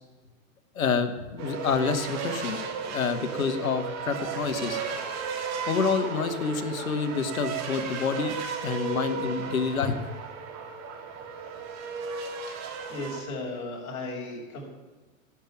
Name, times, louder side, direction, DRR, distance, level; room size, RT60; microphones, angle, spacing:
voice 1, 0.8-2.6 2.9-4.8 5.7-8.4 8.6-10.0, left 5 dB, 80° left, 8 dB, 1.8 m, -28 dB
sound 1, 1.4-13.2, right 5 dB, 40° right, 3.4 m, -34 dB
voice 2, 12.9-14.7, left 2 dB, 45° left, -1 dB, 6.5 m, -36 dB
16.0 x 7.6 x 9.1 m, 1.2 s
hypercardioid pair, 100°, 41 cm